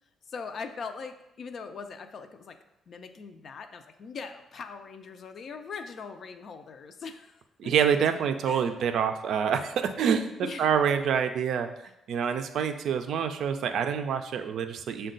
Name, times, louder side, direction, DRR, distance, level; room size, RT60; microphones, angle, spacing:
voice 1, 0.3-2.6 2.9-7.7 8.5-8.7 10.4-10.7, left 5 dB, 55° left, 7 dB, 0.4 m, -41 dB
voice 2, 7.6-11.7 12.1-15.1, right 7 dB, 70° right, 8 dB, 0.4 m, -27 dB
6.2 x 2.2 x 3.8 m, 0.89 s
cardioid pair, 90°, 0 cm